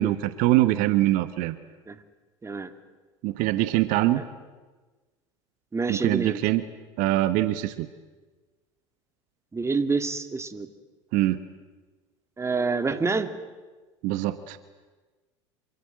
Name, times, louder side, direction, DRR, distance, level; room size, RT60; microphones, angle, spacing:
voice 1, 0.0-1.6 3.2-4.2 5.9-6.6 7.0-7.9 11.1-11.4 14.0-14.6, right 16 dB, 60° right, 12 dB, 1.3 m, -23 dB
voice 2, 5.7-6.4 9.5-10.7 12.4-13.3, right 4 dB, 15° right, 10 dB, 2.0 m, -27 dB
27.0 x 24.5 x 7.8 m, 1.3 s
hypercardioid pair, 80°, 16 cm